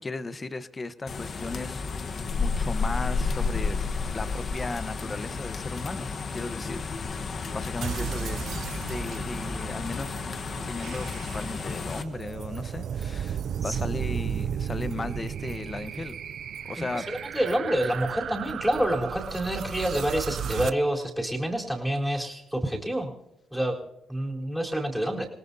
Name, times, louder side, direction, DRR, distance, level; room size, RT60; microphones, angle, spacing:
voice 1, 0.0-3.8 4.1-8.5 8.9-10.2 10.7-16.2 16.6-17.0, left 3 dB, 25° left, 12 dB, 1.0 m, -36 dB
sound 1, 1.1-12.0, left 4 dB, 45° left, 1.2 m, -31 dB
sound 2, 7.8-20.7, right 8 dB, 60° right, 0.5 m, -35 dB
voice 2, 16.8-23.1 23.5-23.8 24.1-25.3, right 1 dB, ahead, -1 dB, 3.9 m, -28 dB
28.5 x 18.0 x 2.8 m, 0.88 s
cardioid pair, 90°, 0 cm